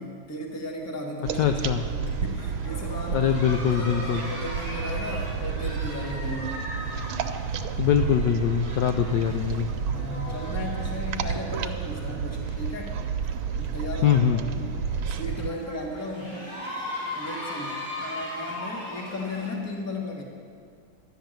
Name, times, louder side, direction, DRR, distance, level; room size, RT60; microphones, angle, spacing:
voice 1, 0.0-3.4 3.7-6.7 9.9-12.9 13.5-14.8 15.1-16.5 17.1-20.2, left 1 dB, 10° left, 0 dB, 1.1 m, -35 dB
sound 1, 1.2-15.5, right 6 dB, 80° right, 1.5 m, -31 dB
voice 2, 1.4-1.8 3.1-4.2 7.8-9.7 14.0-14.4, left 8 dB, 75° left, 6 dB, 1.0 m, -23 dB
sound 2, 1.6-11.1, right 1 dB, 30° right, 1.7 m, -49 dB
sound 3, 1.7-19.5, left 1 dB, 50° left, 3.9 m, -40 dB
12.0 x 6.8 x 9.0 m, 2.1 s
omnidirectional pair, 2.3 m